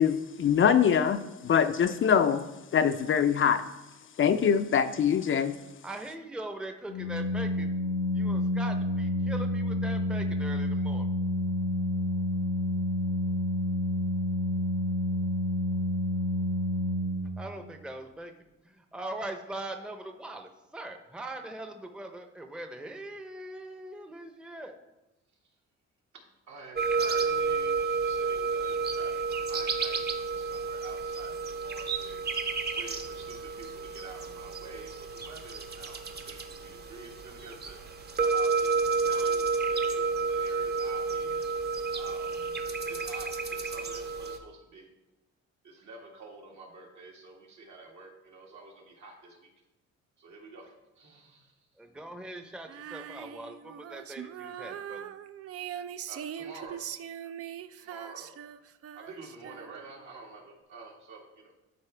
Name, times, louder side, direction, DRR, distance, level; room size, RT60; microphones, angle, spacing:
voice 1, 0.0-2.4 2.7-3.6 4.2-5.6, left 7 dB, 45° left, 9 dB, 0.5 m, -23 dB
voice 2, 5.8-7.7 8.1-11.1 17.4-18.3 18.6-24.7 51.8-55.1, right 1 dB, 5° right, 5 dB, 0.7 m, -41 dB
Organ, 6.9-17.7, left 1 dB, 90° left, 0.9 m, -29 dB
voice 3, 26.5-32.3 32.7-37.8 38.2-41.5 41.9-42.6 42.9-44.9 45.6-49.5 50.2-51.5 56.1-56.8 57.8-58.3 58.9-61.5, right 3 dB, 70° right, -1 dB, 2.0 m, -49 dB
sound 1, 26.8-44.4, right 4 dB, 35° right, 0.9 m, -31 dB
Female singing, 52.7-60.0, right 9 dB, 50° right, 0.4 m, -41 dB
12.0 x 4.4 x 3.3 m, 1.0 s
cardioid pair, 90°, 30 cm